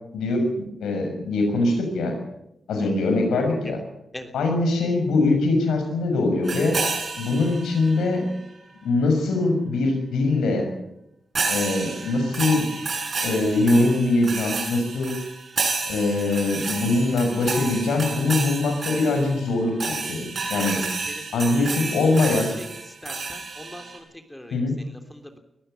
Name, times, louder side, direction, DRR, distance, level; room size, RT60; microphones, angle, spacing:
voice 1, 0.1-2.1 2.7-3.8 4.3-6.8 7.2-8.3 8.8-10.7 11.5-12.7 13.2-15.1 15.9-20.8 21.3-22.5 24.5-24.8, left 2 dB, 90° left, 4 dB, 6.5 m, -22 dB
sound 1, 6.4-8.1 11.4-24.0, right 4 dB, 60° right, 7.6 m, -30 dB
voice 2, 23.0-24.0 24.3-24.6 25.1-25.4, left 1 dB, 10° left, 6 dB, 3.4 m, -40 dB
21.5 x 14.5 x 9.3 m, 0.84 s
cardioid pair, 55°, 0 cm